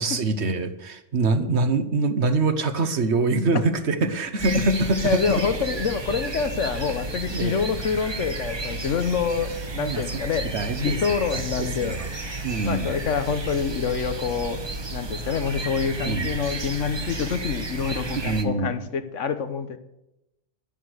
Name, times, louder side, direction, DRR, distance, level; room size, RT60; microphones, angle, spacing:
voice 1, 0.0-5.4 7.3-7.6 9.4-9.5 9.8-10.2 10.5-11.0 11.3-11.9 12.4-12.9 16.0-16.3 18.1-18.7, right 3 dB, 65° right, 10 dB, 1.3 m, -24 dB
sound 1, 4.4-18.4, right 3 dB, 25° right, 0.9 m, -32 dB
voice 2, 5.0-10.5 10.8-14.6 14.9-19.8, left 6 dB, 90° left, 10 dB, 1.4 m, -27 dB
11.0 x 11.0 x 6.4 m, 0.88 s
omnidirectional pair, 1.2 m